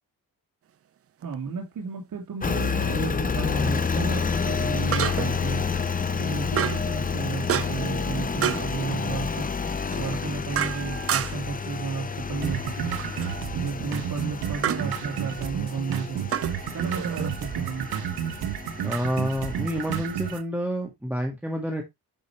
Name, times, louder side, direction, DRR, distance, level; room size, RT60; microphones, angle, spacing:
sound 1, 1.2-1.3 4.9-5.5 6.6-6.9 7.5-7.9 8.4-8.7 9.9-11.5 13.0-13.4 14.6-14.9 16.3-17.3, right 10 dB, 40° right, 0.4 m, -29 dB
voice 1, 1.2-5.7 6.1-9.5 9.9-12.9 13.5-16.3 16.7-17.9, right 4 dB, 60° right, 0 dB, 3.0 m, -33 dB
Engine, 2.4-20.4, left 5 dB, 25° left, 0.7 m, -30 dB
sound 2, 12.4-20.4, right 10 dB, 80° right, 1.1 m, -32 dB
voice 2, 18.8-21.8, equal, 5° right, 2 dB, 1.8 m, -28 dB
11.0 x 5.3 x 3.2 m, 0.20 s
wide cardioid pair, 130°, 37 cm